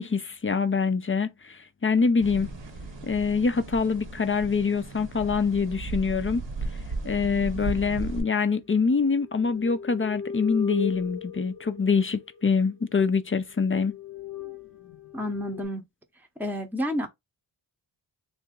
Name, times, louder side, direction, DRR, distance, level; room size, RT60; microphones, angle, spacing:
voice 1, 0.0-2.5 3.0-6.4 7.0-14.0, left 5 dB, 25° left, 0.4 m, -25 dB
sound 1, 2.2-8.2, right 3 dB, 65° right, 0.9 m, -35 dB
sound 2, 8.9-12.5 13.1-13.2 13.5-15.7, left 4 dB, 55° left, 0.8 m, -37 dB
voice 2, 15.1-15.8 16.4-17.1, equal, 5° right, 0.7 m, -29 dB
2.9 x 2.6 x 3.6 m
cardioid pair, 40°, 48 cm